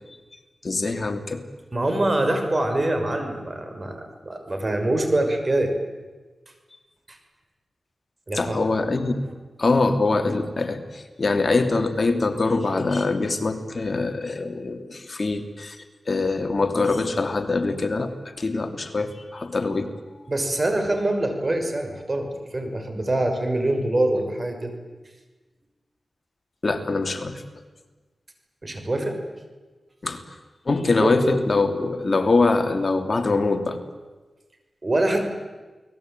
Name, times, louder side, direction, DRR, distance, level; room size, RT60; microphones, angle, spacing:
voice 1, 0.6-1.4 8.3-9.3 9.6-15.8 16.1-19.9 26.6-27.4 30.0-30.2 30.6-33.8, left 3 dB, 50° left, 6 dB, 2.8 m, -23 dB
voice 2, 1.7-5.7 7.1-7.2 8.3-8.7 20.3-24.7 28.6-29.2 31.0-31.4 34.8-35.2, right 1 dB, 40° right, 6 dB, 6.0 m, -24 dB
29.0 x 20.0 x 9.2 m, 1.3 s
cardioid pair, 55°, 0 cm